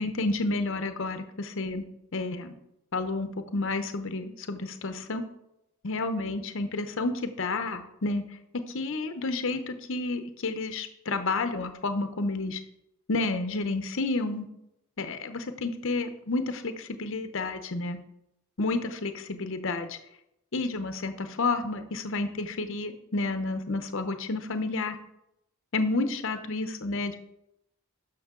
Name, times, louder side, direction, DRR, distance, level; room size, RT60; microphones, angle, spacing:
voice 1, 0.0-1.9 2.1-2.5 2.9-5.2 5.8-8.2 8.7-12.6 13.1-14.5 15.0-18.0 18.6-20.0 20.5-25.0 25.7-27.2, left 3 dB, 60° left, 9 dB, 0.8 m, -30 dB
11.0 x 6.1 x 3.7 m, 0.83 s
head